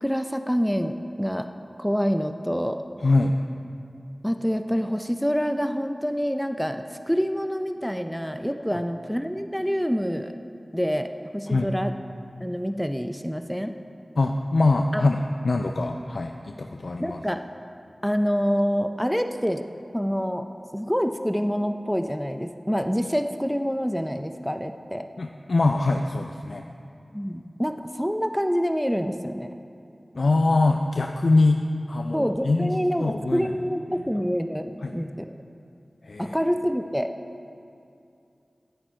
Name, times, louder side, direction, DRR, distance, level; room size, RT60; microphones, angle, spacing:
voice 1, 0.0-1.5 1.8-2.8 4.2-10.3 10.7-11.9 12.4-13.7 14.9-15.1 17.0-17.4 18.0-19.6 19.9-20.4 20.7-25.1 27.1-29.6 32.1-35.4 36.2-37.1, equal, ahead, 7 dB, 0.4 m, -26 dB
voice 2, 3.0-3.4 11.5-11.7 14.2-17.2 25.2-26.6 30.1-31.6 31.9-33.5 34.8-34.9 36.0-36.3, left 2 dB, 75° left, 4 dB, 0.4 m, -23 dB
10.0 x 9.9 x 4.3 m, 2.6 s
wide cardioid pair, 75°, 0 cm